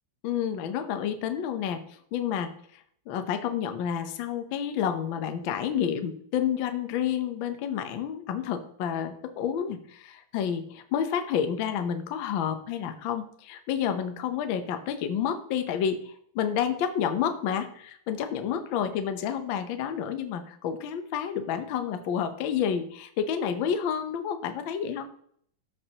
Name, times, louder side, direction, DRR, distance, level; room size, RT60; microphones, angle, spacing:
voice 1, 0.2-1.8 2.1-25.1, left 8 dB, 80° left, 8 dB, 1.1 m, -30 dB
14.0 x 5.4 x 2.9 m, 0.64 s
omnidirectional pair, 3.4 m